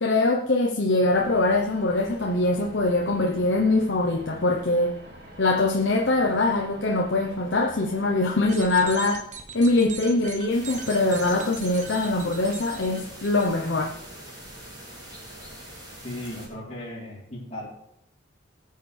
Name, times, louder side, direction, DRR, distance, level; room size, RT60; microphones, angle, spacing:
voice 1, 0.0-4.9 5.4-9.2 9.5-13.9, left 2 dB, 70° left, 1 dB, 0.9 m, -23 dB
sound 1, 1.0-8.9, equal, 60° right, 2.2 m, -45 dB
sound 2, 8.4-13.5, right 6 dB, 40° right, 1.1 m, -40 dB
sound 3, 10.5-16.5, right 1 dB, 20° right, 2.9 m, -43 dB
voice 2, 16.0-17.7, left 1 dB, 35° left, -7 dB, 3.7 m, -36 dB
19.0 x 6.6 x 3.4 m, 0.76 s
head